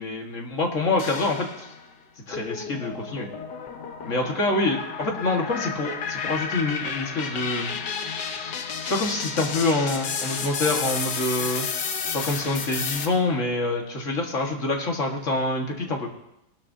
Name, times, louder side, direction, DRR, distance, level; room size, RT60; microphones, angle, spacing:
voice 1, 0.0-1.5 2.3-3.3 4.0-7.8 8.9-11.7 12.1-16.1, left 2 dB, 50° left, 1 dB, 2.0 m, -26 dB
sound 1, 1.0-1.9 2.3-13.1, left 6 dB, 85° left, 1.7 m, -31 dB
18.0 x 12.5 x 2.8 m, 0.83 s
omnidirectional pair, 1.8 m